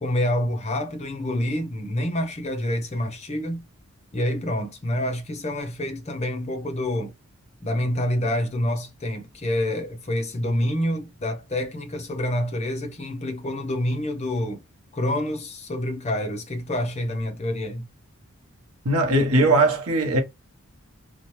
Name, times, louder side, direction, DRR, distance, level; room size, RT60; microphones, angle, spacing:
voice 1, 0.0-3.6 4.1-7.1 7.6-14.6 14.9-17.9, left 1 dB, 30° left, 0.6 m, -27 dB
voice 2, 18.8-20.2, right 2 dB, 90° right, 0.8 m, -19 dB
2.8 x 2.1 x 3.0 m
head